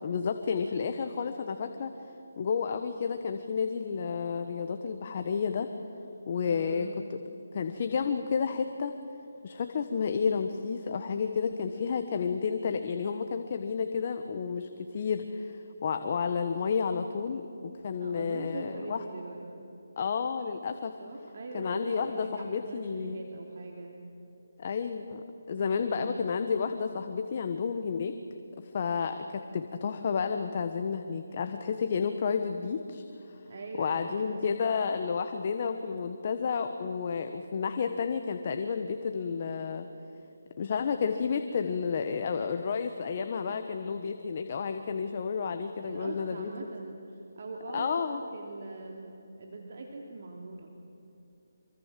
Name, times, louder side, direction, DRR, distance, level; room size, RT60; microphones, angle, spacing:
voice 1, 0.0-1.9 2.4-5.7 6.3-7.2 7.5-9.0 9.4-19.0 20.0-20.9 21.5-23.2 24.6-28.2 28.6-33.4 33.8-39.9 40.6-46.5 47.7-48.2, left 6 dB, 40° left, 7 dB, 1.4 m, -31 dB
voice 2, 6.4-6.9 18.0-19.6 21.0-24.0 25.6-26.2 33.5-34.5 45.8-50.7, right 3 dB, 50° right, 1 dB, 3.0 m, -42 dB
26.5 x 25.0 x 7.7 m, 2.9 s
figure-of-eight pair, 165°, 0 cm